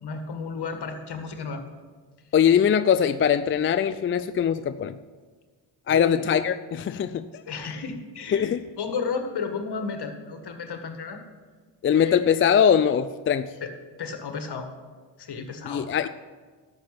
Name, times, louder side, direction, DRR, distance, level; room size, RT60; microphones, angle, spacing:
voice 1, 0.0-1.6 5.9-6.2 7.5-8.5 8.8-11.2 11.9-12.2 13.6-13.7 14.0-14.7 15.2-15.9, left 5 dB, 50° left, 6 dB, 1.7 m, -32 dB
voice 2, 2.3-5.0 5.9-7.4 8.3-8.6 11.8-13.5 15.6-16.1, left 8 dB, 30° left, 11 dB, 0.4 m, -22 dB
11.5 x 7.3 x 5.9 m, 1.5 s
hypercardioid pair, 45°, 49 cm